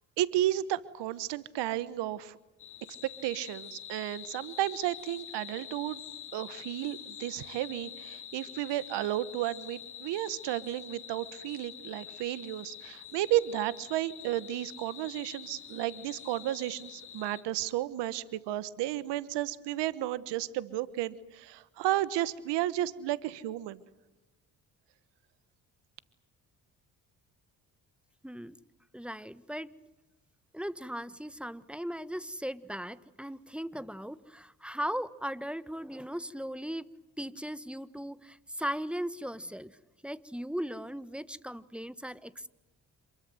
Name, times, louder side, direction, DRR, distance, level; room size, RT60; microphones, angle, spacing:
voice 1, 0.2-2.4 3.0-6.0 6.3-23.8, right 14 dB, 80° right, 17 dB, 1.3 m, -33 dB
sound 1, 2.6-17.4, left 10 dB, 70° left, 2.7 m, -46 dB
voice 2, 28.2-28.6 28.9-29.7 30.5-36.9 37.2-39.8 40.0-42.5, equal, 5° right, 15 dB, 1.4 m, -38 dB
27.5 x 22.0 x 7.8 m, 1.0 s
hypercardioid pair, 50°, 41 cm